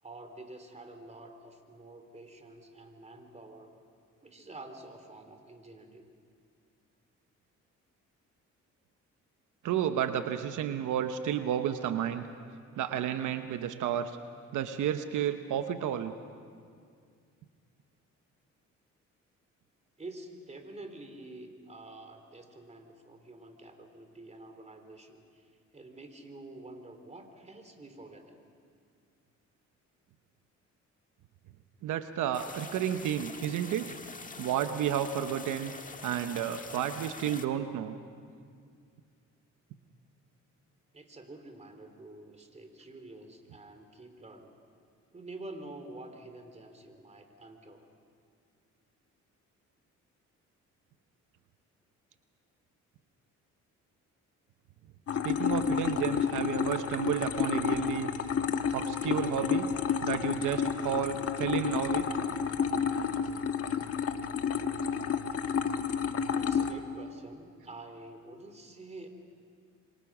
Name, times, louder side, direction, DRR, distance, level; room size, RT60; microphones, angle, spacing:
voice 1, 0.0-3.7 4.2-6.0 20.0-28.4 40.9-44.5 45.1-47.9 66.3-69.1, right 2 dB, 20° right, 6 dB, 3.3 m, -48 dB
voice 2, 9.6-12.3 12.8-14.2 14.5-16.1 31.8-33.9 34.4-35.7 36.0-38.0 55.2-58.1 58.7-59.7 60.0-62.1, right 9 dB, 80° right, 8 dB, 1.0 m, -31 dB
sound 1, 32.3-37.4, left 4 dB, 25° left, 1.6 m, -45 dB
sound 2, 55.1-66.7, left 7 dB, 50° left, 1.4 m, -30 dB
27.5 x 24.0 x 6.1 m, 2.2 s
cardioid pair, 90°, 30 cm